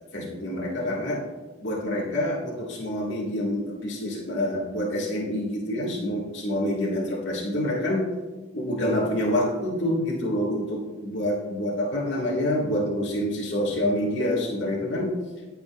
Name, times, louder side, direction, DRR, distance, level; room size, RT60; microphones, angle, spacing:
voice 1, 0.1-1.2 1.6-8.1 8.5-15.1, left 1 dB, 70° left, -4 dB, 1.8 m, -27 dB
16.0 x 6.8 x 2.4 m, 1.2 s
head